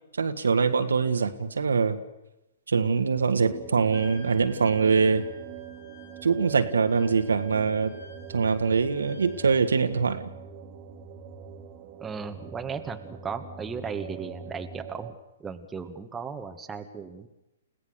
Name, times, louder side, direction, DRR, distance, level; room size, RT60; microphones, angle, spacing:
voice 1, 0.1-2.0 2.7-5.2 6.2-7.9 8.3-10.3, right 5 dB, 75° right, 8 dB, 1.8 m, -23 dB
sound 1, 3.2-15.1, right 7 dB, 35° right, 2.0 m, -43 dB
Wind instrument woodwind instrument, 3.9-9.9, left 3 dB, 65° left, 5.8 m, -52 dB
voice 2, 12.0-15.2 15.4-17.3, right 5 dB, 10° right, 6 dB, 1.6 m, -36 dB
30.0 x 17.0 x 6.9 m, 0.96 s
figure-of-eight pair, 120°, 0 cm